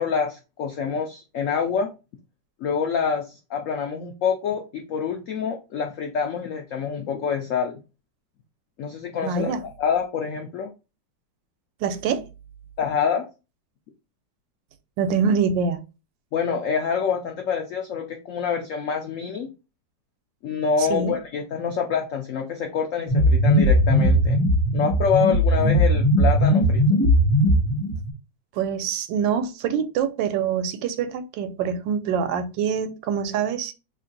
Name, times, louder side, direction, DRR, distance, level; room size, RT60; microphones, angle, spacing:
voice 1, 0.0-1.9 2.6-7.8 8.8-9.5 9.8-10.7 12.8-13.3 16.3-19.5 20.4-24.4 24.7-26.9 27.7-27.8, left 6 dB, 85° left, 0.7 m, -26 dB
voice 2, 9.2-9.6 11.8-12.2 15.0-15.8 20.8-21.1 25.6-26.0 28.5-33.7, right 6 dB, 90° right, 1.3 m, -25 dB
sound 1, 23.1-28.1, equal, 40° left, 1.1 m, -19 dB
3.1 x 2.5 x 3.7 m
omnidirectional pair, 1.9 m